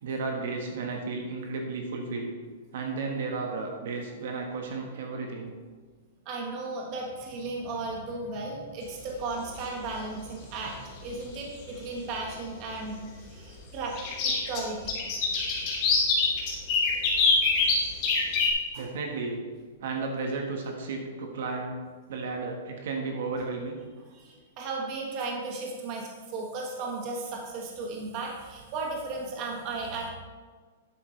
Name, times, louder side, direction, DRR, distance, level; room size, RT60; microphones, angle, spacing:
voice 1, 0.0-2.3 2.7-5.5 18.7-19.4 19.8-21.7 22.1-23.8, right 4 dB, 55° right, 2 dB, 1.5 m, -33 dB
voice 2, 6.2-13.0 13.3-13.9 14.2-15.1 18.7-18.9 24.1-30.1, right 3 dB, 30° right, -1 dB, 1.5 m, -35 dB
sound 1, 9.1-9.5 11.1-11.2 11.6-11.7 13.9-18.5, left 4 dB, 30° left, 2.1 m, -24 dB
10.5 x 8.3 x 3.3 m, 1.5 s
supercardioid pair, 175°, 0 cm